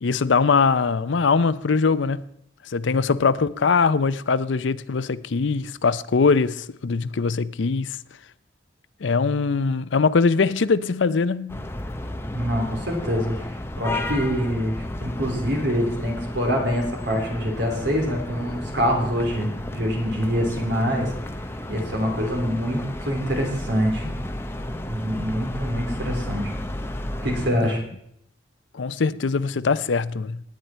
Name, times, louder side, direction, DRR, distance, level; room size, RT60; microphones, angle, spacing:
voice 1, 0.0-2.2 2.7-8.0 9.0-11.7 28.7-30.4, left 4 dB, 70° left, 0.5 m, -22 dB
sound 1, 11.5-27.5, left 1 dB, 10° left, 0.8 m, -33 dB
voice 2, 12.3-13.5 13.8-14.7 15.0-21.1 21.7-24.1 24.7-26.5 27.2-27.8, equal, 60° right, 3.6 m, -25 dB
18.0 x 9.4 x 4.4 m
head